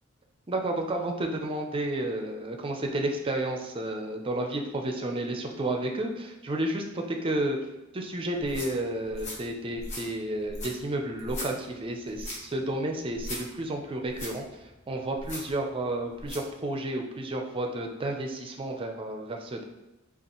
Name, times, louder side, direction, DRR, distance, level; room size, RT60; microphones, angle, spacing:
voice 1, 0.5-7.6 7.9-14.5 14.9-19.6, right 1 dB, 25° right, 3 dB, 0.4 m, -31 dB
sound 1, 8.3-16.5, left 1 dB, 35° left, 1.1 m, -41 dB
5.3 x 2.4 x 3.0 m, 1.0 s
head